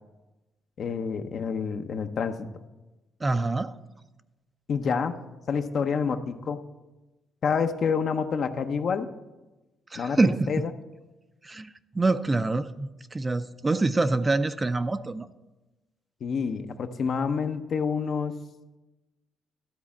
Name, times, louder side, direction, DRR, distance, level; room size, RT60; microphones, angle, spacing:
voice 1, 0.8-2.5 4.7-5.1 5.5-6.6 7.4-9.1 10.0-10.2 10.5-10.7 16.2-18.3, left 6 dB, 60° left, 8 dB, 0.7 m, -28 dB
voice 2, 3.2-3.7 9.9-10.5 11.4-15.3, right 3 dB, 25° right, 11 dB, 0.4 m, -26 dB
12.5 x 4.2 x 7.1 m, 1.1 s
cardioid pair, 90°, 0 cm